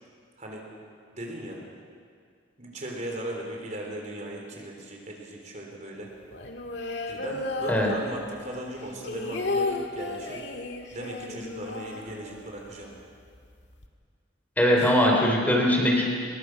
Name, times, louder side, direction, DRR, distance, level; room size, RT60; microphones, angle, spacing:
voice 1, 0.4-0.7 1.1-1.6 2.6-6.1 7.1-10.5 10.9-12.9 14.8-15.1, right 1 dB, 40° right, 0 dB, 3.8 m, -38 dB
sound 1, 6.3-8.4 8.8-12.7 13.0-13.1 13.4-13.9, left 3 dB, 70° left, 1.9 m, -33 dB
voice 2, 14.6-16.0, equal, 10° left, -1 dB, 3.5 m, -21 dB
23.5 x 22.0 x 6.2 m, 2.1 s
head